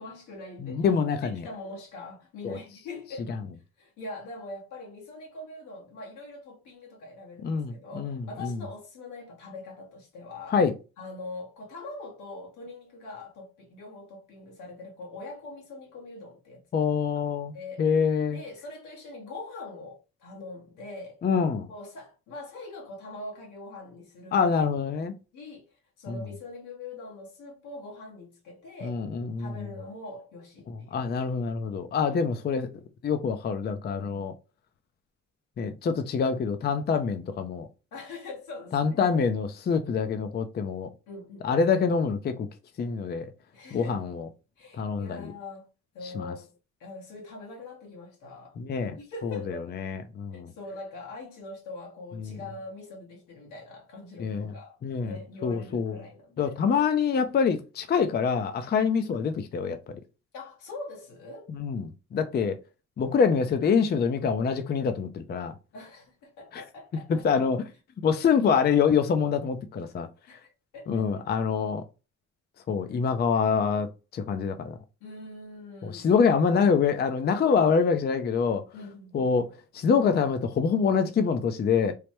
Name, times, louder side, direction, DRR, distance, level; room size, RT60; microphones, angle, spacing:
voice 1, 0.0-0.8 1.2-3.4 3.8-10.6 11.0-16.9 17.5-17.8 18.3-21.2 21.7-24.5 25.3-29.0 29.4-31.1 37.9-39.0 41.1-41.6 43.5-44.0 44.6-45.7 45.9-48.6 49.0-49.7 50.3-54.8 55.0-56.6 60.3-61.5 65.7-67.4 70.3-71.2 75.0-76.1 78.7-79.3, left 2 dB, 85° left, 1.3 m, -43 dB
voice 2, 0.6-1.5 2.4-2.6 3.3-3.4 7.4-8.6 10.5-10.7 16.7-18.4 21.2-21.7 24.3-25.1 26.1-26.2 28.8-29.7 30.7-32.7 33.0-34.3 35.6-37.7 38.7-40.9 41.4-42.5 42.8-43.3 43.7-44.3 44.8-45.3 46.0-46.3 48.6-49.0 49.2-50.5 52.2-52.4 54.2-54.5 54.8-55.1 55.4-56.0 56.4-60.0 61.5-62.6 63.0-65.6 66.5-66.6 67.1-67.6 68.0-70.1 70.9-71.8 72.7-74.8 75.8-78.6 79.1-81.9, left 6 dB, 35° left, 0.4 m, -26 dB
3.2 x 2.1 x 2.9 m
cardioid pair, 90°, 30 cm